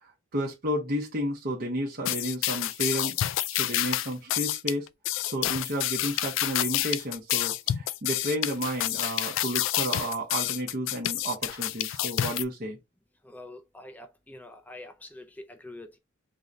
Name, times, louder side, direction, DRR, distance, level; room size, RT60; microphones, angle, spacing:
voice 1, 0.0-3.2 3.5-4.9 5.2-12.8, equal, 50° right, 1.0 m, -32 dB
sound 1, 2.0-12.4, left 13 dB, 80° left, 0.3 m, -29 dB
voice 2, 13.2-16.0, left 2 dB, 10° left, 0.4 m, -45 dB
3.9 x 2.6 x 3.2 m
head